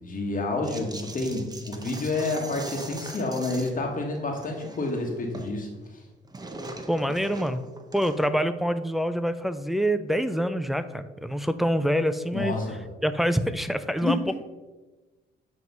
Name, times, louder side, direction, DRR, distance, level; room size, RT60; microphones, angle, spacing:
voice 1, 0.0-6.0 12.3-12.8 14.0-14.2, left 2 dB, 45° left, 0 dB, 1.2 m, -29 dB
sound 1, 0.6-3.8 4.1-5.6 5.8-8.4, right 2 dB, 20° right, 0.8 m, -41 dB
voice 2, 6.9-7.6 7.9-12.6 13.0-14.3, equal, ahead, 10 dB, 0.4 m, -26 dB
8.0 x 3.1 x 5.3 m, 1.2 s
cardioid pair, 90°, 20 cm